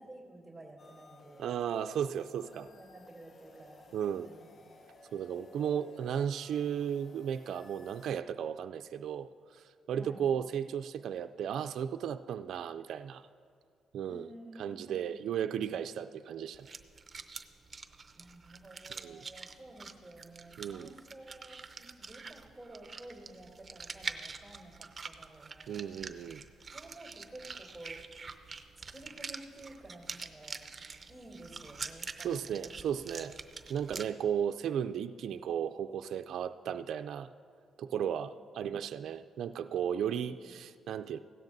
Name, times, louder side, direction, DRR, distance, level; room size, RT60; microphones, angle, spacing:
voice 1, 0.0-1.5 2.5-3.9 4.2-4.5 9.9-10.3 14.1-15.2 18.2-25.9 26.7-28.0 28.9-30.6 31.1-32.8 33.2-33.4 38.4-38.5 40.2-40.5, right 1 dB, 5° left, -3 dB, 3.0 m, -52 dB
sound 1, 0.8-8.1, left 2 dB, 50° left, 0.9 m, -57 dB
voice 2, 1.4-2.7 3.9-4.3 5.1-13.3 13.9-14.3 14.6-16.8 18.9-19.2 20.6-20.9 25.7-26.4 32.2-33.4 33.7-37.3 37.8-41.2, right 8 dB, 70° right, 9 dB, 0.3 m, -35 dB
sound 2, 16.5-34.0, right 4 dB, 30° right, 0.6 m, -45 dB
16.5 x 13.0 x 2.7 m, 2.2 s
cardioid pair, 90°, 0 cm